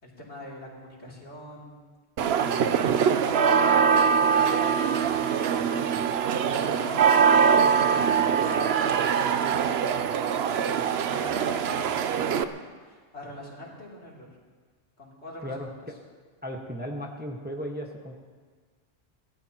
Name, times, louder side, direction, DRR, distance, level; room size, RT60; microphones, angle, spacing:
voice 1, 0.0-1.9 2.4-2.8 3.1-10.0 10.2-14.3 15.0-15.9, left 1 dB, 75° left, -4 dB, 3.5 m, -43 dB
sound 1, 2.2-12.4, right 7 dB, 70° right, 0.9 m, -23 dB
voice 2, 16.4-18.1, equal, 10° right, 0 dB, 1.3 m, -35 dB
23.5 x 16.5 x 3.0 m, 1.5 s
omnidirectional pair, 1.1 m